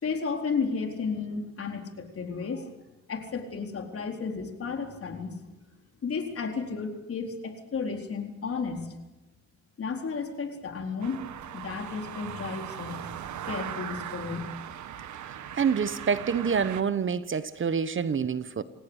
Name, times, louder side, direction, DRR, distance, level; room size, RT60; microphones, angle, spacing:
voice 1, 0.0-2.7 3.1-5.4 6.0-8.9 9.8-11.3 11.5-13.0 13.5-14.6 15.4-15.7, left 5 dB, 50° left, 4 dB, 4.2 m, -33 dB
sound 1, 11.0-16.8, right 10 dB, 70° right, 1.6 m, -39 dB
voice 2, 15.6-18.6, right 6 dB, 40° right, 14 dB, 1.2 m, -27 dB
28.5 x 17.5 x 8.2 m, 1.0 s
cardioid pair, 90°, 30 cm